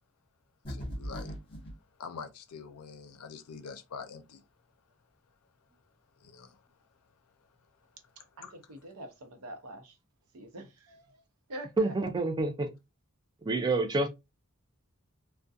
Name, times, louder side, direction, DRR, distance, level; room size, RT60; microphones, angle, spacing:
sound 1, 0.6-1.8, equal, 25° left, 1.0 m, -39 dB
voice 1, 0.7-1.3 2.0-4.4 6.2-6.6 8.4-8.5, left 5 dB, 80° left, 0.5 m, -45 dB
voice 2, 8.4-10.0 10.3-11.2 11.5-11.9, right 1 dB, 85° right, 0.7 m, -45 dB
voice 3, 11.8-12.7 13.4-14.1, right 2 dB, 20° right, 0.3 m, -28 dB
2.4 x 2.2 x 2.6 m
head